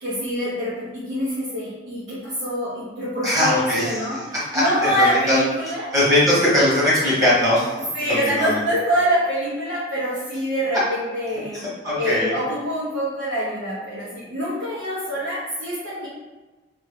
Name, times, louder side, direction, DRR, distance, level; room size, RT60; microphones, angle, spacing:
voice 1, 0.0-4.2 4.5-5.9 7.9-11.6 11.9-16.1, equal, 70° right, -11 dB, 0.9 m, -25 dB
voice 2, 3.2-4.2 4.5-5.4 5.9-7.7 8.1-8.6 11.5-12.3, left 1 dB, 20° right, -8 dB, 1.2 m, -20 dB
3.1 x 2.6 x 3.7 m, 1.2 s
head